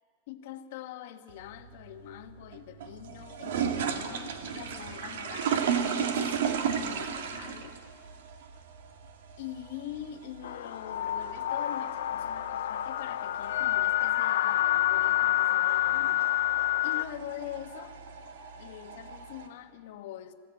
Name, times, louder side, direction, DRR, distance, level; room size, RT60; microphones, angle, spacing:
voice 1, 0.3-7.8 9.4-16.5 16.8-18.0 18.6-20.3, left 11 dB, 55° left, 8 dB, 1.3 m, -44 dB
sound 1, 1.3-19.5, right 7 dB, 75° right, 1.9 m, -35 dB
sound 2, 10.4-17.0, left 14 dB, 85° left, 0.5 m, -28 dB
21.5 x 16.0 x 9.1 m, 2.4 s
supercardioid pair, 165°, 0 cm